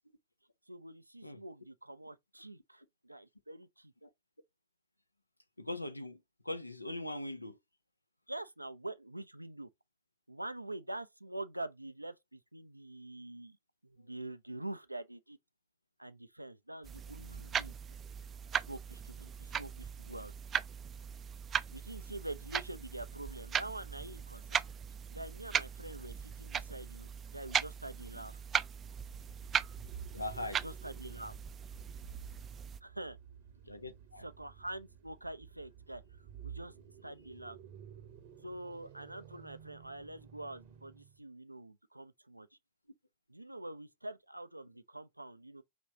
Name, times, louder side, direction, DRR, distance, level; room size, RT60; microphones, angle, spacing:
voice 1, 0.7-3.9 8.3-9.7 10.3-13.6 13.8-15.4 16.0-17.7 18.5-20.3 21.7-24.7 25.1-28.4 30.6-31.3 32.8-33.2 34.2-36.0 36.4-36.7 37.0-37.6 38.4-42.5 43.3-45.6, right 1 dB, 85° right, 0.4 m, -45 dB
voice 2, 5.6-6.2 6.4-7.6 14.0-14.1 30.1-30.6 33.6-34.2, left 1 dB, 85° left, 0.6 m, -41 dB
sound 1, 16.8-32.8, right 8 dB, 25° right, 0.4 m, -39 dB
sound 2, 29.0-41.2, right 8 dB, 50° right, 0.9 m, -53 dB
5.1 x 3.1 x 2.7 m
figure-of-eight pair, 90°, 0 cm